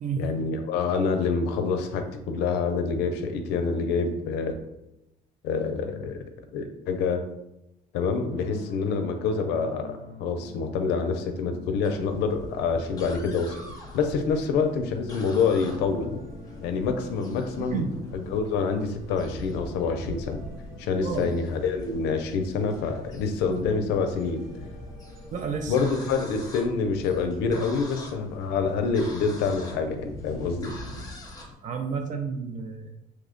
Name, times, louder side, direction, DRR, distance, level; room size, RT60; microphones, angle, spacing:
voice 1, 0.2-4.5 5.4-6.2 6.5-7.2 7.9-13.6 13.9-16.1 16.6-17.9 18.1-20.4 20.8-24.4 25.7-30.7, left 5 dB, 90° left, 6 dB, 0.5 m, -27 dB
sound 1, 8.3-14.2 14.8-26.1, left 2 dB, 65° right, 1.3 m, -48 dB
sound 2, 11.8-31.6, left 1 dB, 20° left, 0.7 m, -43 dB
voice 2, 17.6-18.0 21.0-21.4 25.3-25.8 26.1-26.2 31.6-32.9, right 6 dB, 50° right, 5 dB, 0.4 m, -31 dB
3.1 x 2.1 x 3.7 m, 0.88 s
cardioid pair, 110°, 17 cm